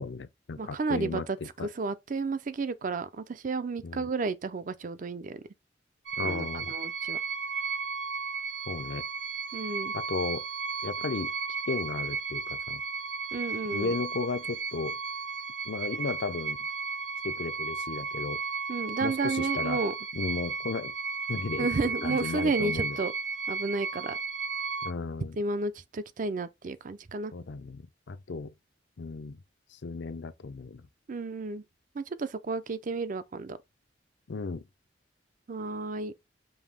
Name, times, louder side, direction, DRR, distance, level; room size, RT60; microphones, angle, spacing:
voice 1, 0.0-1.7 3.8-4.1 6.2-6.7 8.7-9.0 9.9-10.4 10.8-11.3 11.7-12.8 13.7-15.0 15.7-16.6 17.2-18.4 19.0-19.8 20.1-20.9 21.3-21.7 22.0-23.0 24.8-25.4 27.3-28.5 29.0-29.4 29.7-30.9 34.3-34.6, left 4 dB, 70° left, 0.5 m, -34 dB
voice 2, 0.6-1.4 1.8-5.4 6.2-7.2 9.5-9.9 13.3-13.9 18.7-19.9 21.6-23.1 23.5-24.2 25.4-27.3 31.1-31.6 31.9-33.6 35.5-36.1, right 3 dB, 45° right, 0.5 m, -32 dB
sound 1, 6.1-24.9, right 5 dB, 85° right, 0.9 m, -34 dB
5.5 x 2.7 x 3.5 m
head